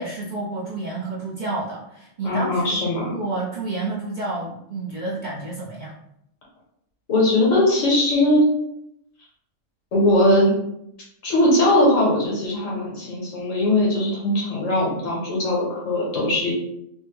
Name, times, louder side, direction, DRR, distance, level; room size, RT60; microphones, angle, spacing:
voice 1, 0.0-2.8 3.1-6.0, right 2 dB, 50° right, -6 dB, 0.6 m, -30 dB
voice 2, 2.2-3.1 7.1-8.4 9.9-10.5 11.2-16.5, left 1 dB, 85° left, -4 dB, 1.5 m, -20 dB
3.3 x 2.1 x 3.1 m, 0.77 s
omnidirectional pair, 1.3 m